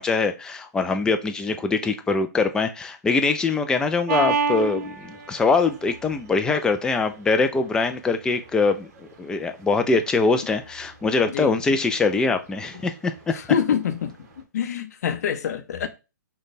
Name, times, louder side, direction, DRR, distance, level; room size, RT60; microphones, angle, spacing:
voice 1, 0.0-13.3, left 4 dB, 5° left, 0.3 m, -23 dB
sound 1, 4.1-14.4, right 5 dB, 55° right, 1.0 m, -32 dB
voice 2, 13.3-15.9, left 8 dB, 60° left, 0.6 m, -26 dB
3.2 x 2.2 x 4.1 m
hypercardioid pair, 135°, 10 cm